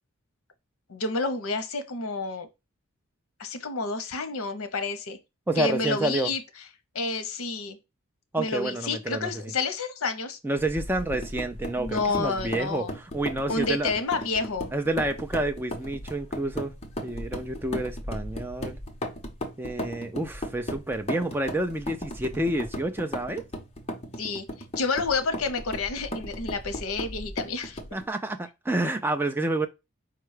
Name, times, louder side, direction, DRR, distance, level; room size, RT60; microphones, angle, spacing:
voice 1, 0.9-2.5 3.4-5.2 5.6-6.4 6.9-7.8 8.4-10.4 11.8-12.9 13.5-14.7 24.2-24.4 24.8-27.8, left 3 dB, 75° left, 0.7 m, -29 dB
voice 2, 5.5-6.3 8.3-9.5 10.4-13.9 14.7-16.7 17.0-18.8 19.6-23.4 27.9-29.7, right 1 dB, 10° right, 0.3 m, -29 dB
sound 1, 10.6-28.1, equal, 30° left, 0.8 m, -36 dB
4.8 x 2.2 x 4.8 m
head